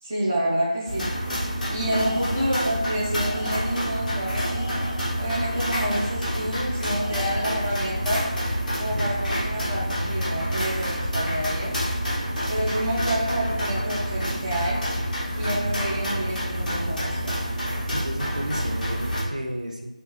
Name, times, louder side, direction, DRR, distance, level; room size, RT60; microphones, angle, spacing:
voice 1, 0.0-1.1 1.7-4.7 5.2-8.2 8.8-11.7 12.5-14.8 15.3-17.4, right 1 dB, 15° right, -7 dB, 0.6 m, -28 dB
sound 1, 0.9-19.2, equal, 5° left, 1.0 m, -28 dB
Tools, 1.8-2.7 3.2-4.0 4.4-6.3 7.0-7.9, left 2 dB, 25° left, 0.4 m, -39 dB
sound 2, 6.5-7.0 7.3-9.4 9.7-11.8 12.1-14.2 14.5-16.0, equal, 85° right, 1.1 m, -40 dB
voice 2, 17.9-19.9, right 1 dB, 60° right, 1 dB, 0.7 m, -33 dB
4.5 x 3.3 x 3.1 m, 1.0 s
figure-of-eight pair, 165°, 4 cm